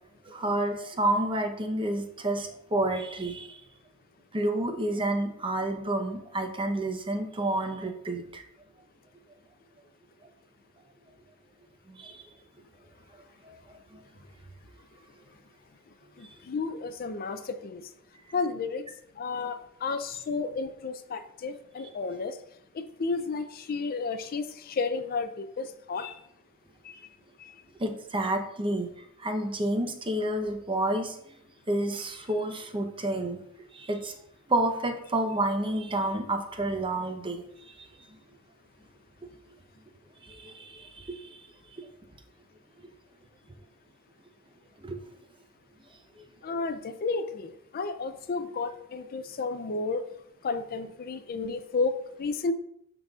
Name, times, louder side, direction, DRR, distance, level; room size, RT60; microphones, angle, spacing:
voice 1, 0.3-3.6 4.3-8.4 11.9-12.2 13.4-14.0 27.8-28.9 29.2-31.2 31.7-33.4 33.7-34.1 34.5-37.4 37.8-37.9 40.2-41.4 41.8-41.9 44.8-45.0, right 1 dB, 25° right, 5 dB, 0.7 m, -30 dB
voice 2, 16.2-17.9 18.3-18.9 19.2-22.4 22.7-26.2 26.8-27.1 27.4-27.5 46.4-50.0 50.4-52.5, left 4 dB, 45° left, 10 dB, 0.4 m, -32 dB
12.0 x 3.9 x 2.4 m, 0.74 s
head